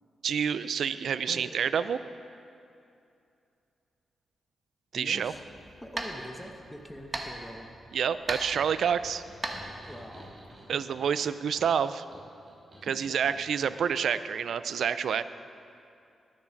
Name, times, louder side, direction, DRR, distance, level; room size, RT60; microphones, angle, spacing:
voice 1, 0.2-2.0 4.9-5.3 7.9-9.2 10.7-12.0 12.8-15.2, right 7 dB, 75° right, 14 dB, 0.3 m, -28 dB
voice 2, 1.3-1.8 4.9-7.7 9.8-10.3 10.7-10.8 12.8-13.2, equal, 5° left, 3 dB, 0.9 m, -44 dB
sound 1, 5.2-10.5, right 2 dB, 30° right, 1.0 m, -40 dB
Flashing lamp, 8.5-13.8, equal, 45° right, 2.7 m, -51 dB
11.5 x 7.0 x 5.7 m, 2.6 s
cardioid pair, 85°, 0 cm